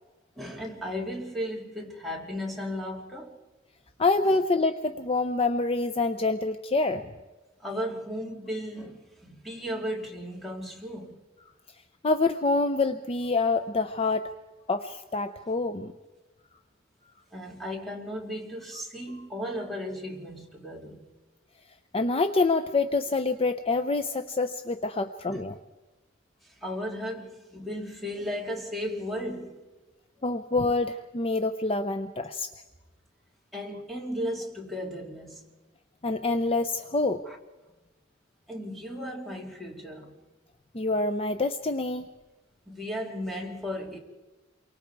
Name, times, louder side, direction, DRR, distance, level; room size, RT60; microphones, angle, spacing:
voice 1, 0.4-3.4 7.6-11.2 17.3-21.0 25.3-25.4 26.6-29.6 33.5-35.4 37.3-37.4 38.5-40.1 42.7-44.0, equal, ahead, 2.6 m, -35 dB
voice 2, 4.0-7.1 12.0-14.3 14.7-15.9 21.9-25.6 30.2-32.5 36.0-37.2 40.7-42.1, left 3 dB, 30° left, 0.6 m, -26 dB
28.5 x 23.5 x 4.7 m
head